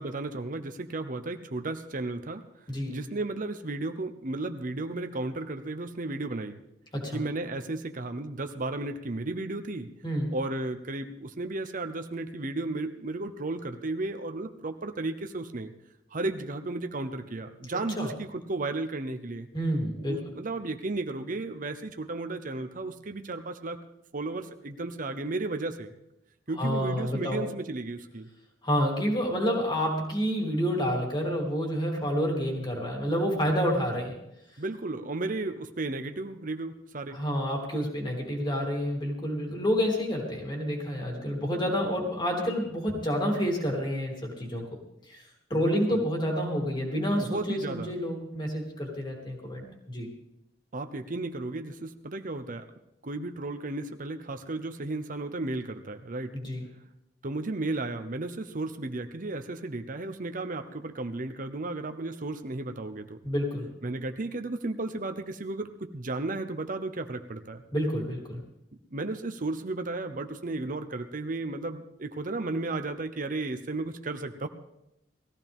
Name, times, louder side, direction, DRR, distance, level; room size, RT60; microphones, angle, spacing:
voice 1, 0.0-2.4 2.9-6.6 7.1-9.9 10.3-15.7 16.1-19.5 20.0-23.8 24.1-25.9 26.5-28.3 34.6-37.2 45.5-46.0 47.2-47.9 50.7-52.7 53.0-56.3 57.2-63.2 63.8-67.6 68.9-74.5, right 2 dB, 50° right, 8 dB, 0.9 m, -34 dB
voice 2, 10.0-10.3 18.0-18.1 19.5-20.2 26.6-27.4 28.6-34.2 37.1-44.8 45.1-45.2 45.5-50.1 56.3-56.6 63.2-63.7 67.7-68.4, equal, 25° left, 0 dB, 3.2 m, -29 dB
19.5 x 14.5 x 3.6 m, 0.84 s
head